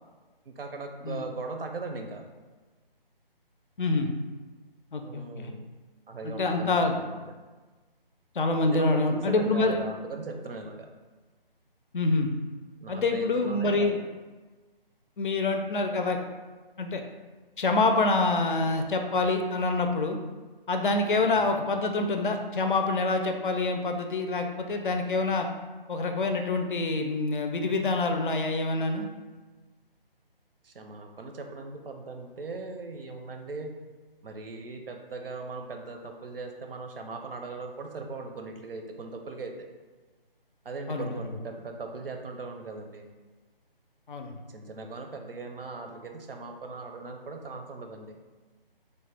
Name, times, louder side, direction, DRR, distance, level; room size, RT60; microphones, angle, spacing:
voice 1, 0.5-2.2 5.0-5.7 6.1-7.2 8.7-10.9 12.8-14.0 21.2-21.4 30.6-33.7 34.2-39.5 40.6-43.1 44.5-48.2, right 3 dB, 70° right, 4 dB, 0.5 m, -39 dB
voice 2, 3.8-4.1 4.9-5.5 6.2-7.0 8.4-9.8 11.9-12.3 12.9-14.0 15.2-16.2 16.8-17.0 17.6-20.2 20.7-25.5 25.9-29.1 40.9-41.2 44.1-44.4, left 3 dB, 60° left, 5 dB, 0.5 m, -26 dB
3.2 x 2.1 x 3.4 m, 1.3 s
figure-of-eight pair, 155°, 29 cm